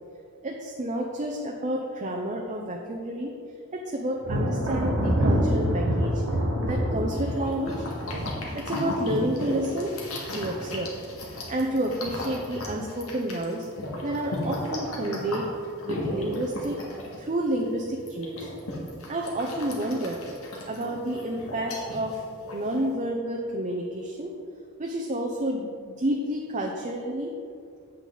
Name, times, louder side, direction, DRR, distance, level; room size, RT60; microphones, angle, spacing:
voice 1, 0.4-3.3 3.7-6.1 6.6-7.8 8.5-9.9 10.3-10.9 11.5-13.7 14.0-15.5 15.8-18.5 19.1-20.2 20.6-22.2 22.5-24.3 24.8-27.3, right 1 dB, 35° right, 0 dB, 0.6 m, -30 dB
Thunder, 4.2-10.7 11.0-11.6 12.1-12.9, equal, 65° right, 1.2 m, -27 dB
sound 1, 7.1-22.9, left 1 dB, 70° left, 1.8 m, -36 dB
8.2 x 8.2 x 3.9 m, 2.3 s
head